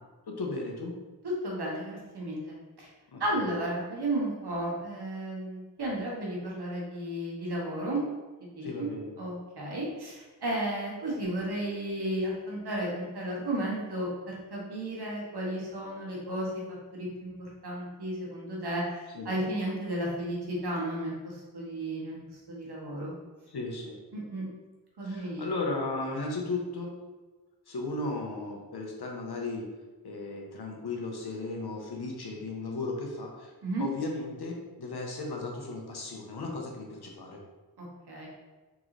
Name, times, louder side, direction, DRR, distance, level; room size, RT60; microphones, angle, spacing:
voice 1, 0.3-0.9 3.1-3.5 8.6-9.1 19.1-19.3 23.5-24.0 25.0-26.9 27.7-29.6 30.0-33.5 33.8-37.4, left 2 dB, 75° left, 0 dB, 1.0 m, -35 dB
voice 2, 1.4-2.9 3.2-8.0 8.5-8.9 9.2-16.6 16.9-22.1 22.5-23.1 24.1-24.5 25.0-25.4 33.6-33.9 37.8-38.3, right 1 dB, 85° right, -3 dB, 1.4 m, -33 dB
3.8 x 3.8 x 3.2 m, 1.2 s
cardioid pair, 45°, 38 cm